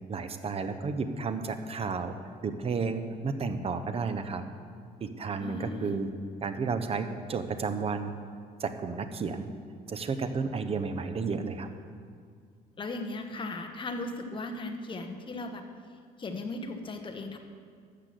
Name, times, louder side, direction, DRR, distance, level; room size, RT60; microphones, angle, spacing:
voice 1, 0.1-2.1 2.4-4.4 5.0-6.1 6.4-8.1 8.6-9.5 9.9-11.7, right 4 dB, 35° right, 9 dB, 0.9 m, -32 dB
voice 2, 5.4-6.0 12.8-15.6 16.2-17.4, left 2 dB, 30° left, 4 dB, 1.2 m, -37 dB
13.5 x 5.9 x 7.7 m, 2.1 s
cardioid pair, 110°, 17 cm